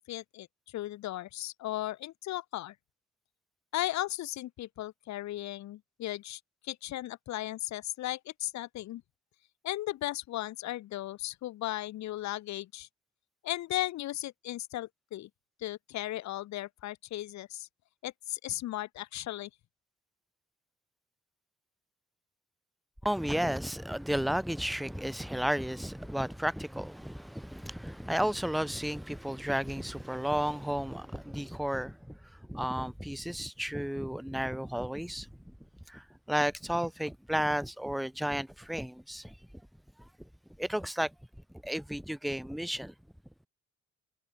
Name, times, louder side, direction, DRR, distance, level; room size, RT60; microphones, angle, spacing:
voice 1, 0.1-2.7 3.7-9.0 9.6-12.9 13.4-15.3 15.6-17.7 18.0-19.5, left 15 dB, 65° left, 0.6 m, -36 dB
voice 2, 23.0-35.5 35.9-39.4 40.6-41.1 41.6-42.9, equal, ahead, 0.7 m, -33 dB
cardioid pair, 90°, 30 cm